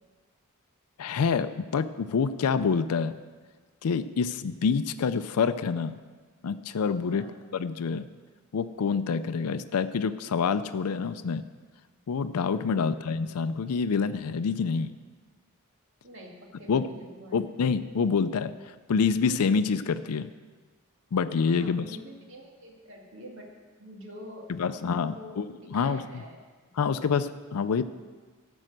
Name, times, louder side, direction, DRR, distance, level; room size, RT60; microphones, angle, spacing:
voice 1, 1.0-3.2 3.8-6.0 6.4-7.2 7.5-8.1 8.5-11.4 12.1-14.9 16.7-16.9 17.3-18.5 18.9-20.3 21.1-21.9 24.5-25.4 25.7-26.0 26.8-27.8, left 5 dB, 85° left, 11 dB, 0.4 m, -27 dB
voice 2, 7.0-7.4 16.0-17.5 21.5-23.5 23.8-25.4 25.7-27.1, equal, 60° right, -1 dB, 2.2 m, -46 dB
12.0 x 6.3 x 7.8 m, 1.4 s
head